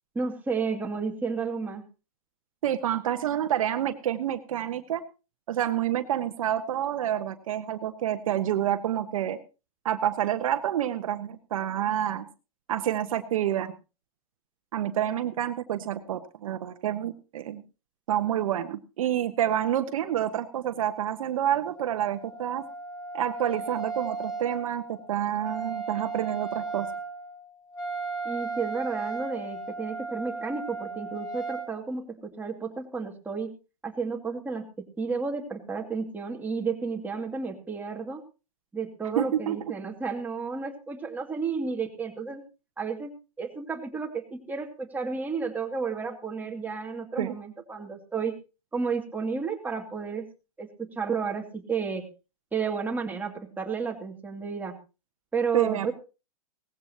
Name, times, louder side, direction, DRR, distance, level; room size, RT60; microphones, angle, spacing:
voice 1, 0.1-1.8 28.2-33.6 33.8-38.2 38.7-42.4 42.8-43.1 43.4-48.3 48.7-50.3 50.6-52.1 52.5-54.8 55.3-55.9, right 5 dB, 10° right, 2 dB, 2.3 m, -32 dB
voice 2, 2.6-5.0 5.5-9.4 9.8-12.3 12.7-13.7 14.7-17.6 18.1-22.6 23.1-26.9 39.2-39.6 47.2-47.3 55.5-55.9, right 11 dB, 65° right, 9 dB, 1.2 m, -28 dB
Wind instrument woodwind instrument, 21.7-31.7, right 4 dB, 20° left, 3.4 m, -36 dB
18.0 x 15.5 x 2.9 m, 0.31 s
hypercardioid pair, 125°, 19 cm